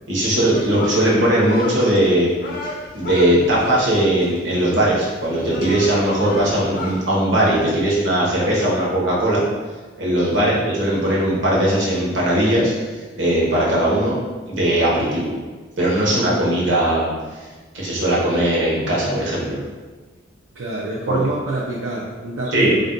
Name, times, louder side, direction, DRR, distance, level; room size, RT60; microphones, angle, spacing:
voice 1, 0.1-2.4 2.9-9.4 10.0-12.7 13.1-14.2 14.5-15.3 15.8-17.1 17.7-19.6 21.1-21.2 22.5-22.7, right 1 dB, 70° right, -5 dB, 0.8 m, -19 dB
sound 1, 0.5-7.1, left 2 dB, 45° left, 0.4 m, -31 dB
voice 2, 20.6-22.8, right 2 dB, 90° right, -5 dB, 0.4 m, -26 dB
2.5 x 2.1 x 3.8 m, 1.3 s
head